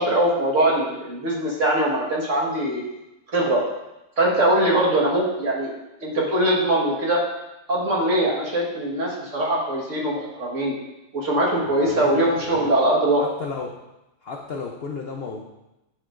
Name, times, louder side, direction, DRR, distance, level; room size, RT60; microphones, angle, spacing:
voice 1, 0.0-2.8 3.3-3.6 4.2-5.7 6.0-7.2 7.7-10.7 11.1-13.2, right 1 dB, 45° right, -3 dB, 1.8 m, -22 dB
voice 2, 11.7-12.9 13.2-13.8 14.2-15.5, left 4 dB, 75° left, 1 dB, 0.5 m, -34 dB
11.0 x 5.3 x 2.5 m, 0.96 s
omnidirectional pair, 1.9 m